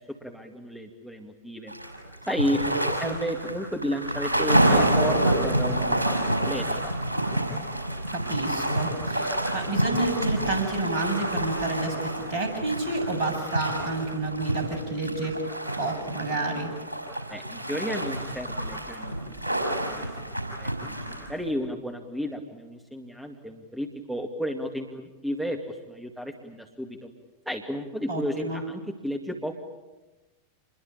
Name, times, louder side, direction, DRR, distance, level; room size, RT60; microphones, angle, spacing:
voice 1, 0.0-1.7 2.3-6.8 17.3-19.6 19.9-20.1 20.4-27.1 27.5-29.6, equal, 5° right, 4 dB, 2.2 m, -33 dB
sound 1, 1.7-21.5, right 1 dB, 80° right, 6.0 m, -28 dB
voice 2, 8.1-15.4 15.8-16.7 28.1-28.6, right 2 dB, 50° right, 5 dB, 7.9 m, -29 dB
28.0 x 22.0 x 8.8 m, 1.1 s
figure-of-eight pair, 90°, 0 cm